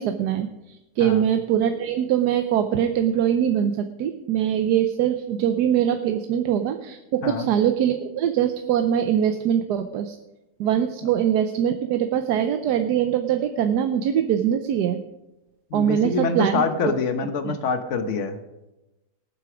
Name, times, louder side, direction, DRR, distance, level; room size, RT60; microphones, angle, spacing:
voice 1, 0.0-10.2 10.6-15.0 15.7-16.9 17.4-17.5, right 9 dB, 70° right, 8 dB, 1.2 m, -23 dB
voice 2, 15.7-18.4, left 4 dB, 50° left, 9 dB, 1.3 m, -25 dB
19.0 x 8.0 x 5.0 m, 0.99 s
omnidirectional pair, 1.9 m